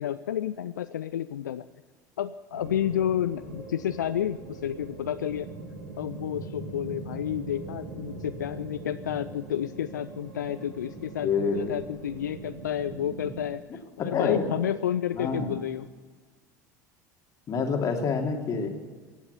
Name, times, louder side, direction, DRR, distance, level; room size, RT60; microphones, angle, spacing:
voice 1, 0.0-1.7 2.2-5.5 6.0-13.6 14.0-15.9, left 10 dB, 80° left, 12 dB, 0.4 m, -30 dB
sound 1, 2.5-13.4, right 3 dB, 85° right, 2.2 m, -41 dB
voice 2, 11.2-11.8 14.0-14.5 15.1-15.5 17.5-18.7, left 5 dB, 35° left, 3 dB, 2.6 m, -27 dB
16.0 x 8.4 x 8.3 m, 1.5 s
figure-of-eight pair, 70°, 10 cm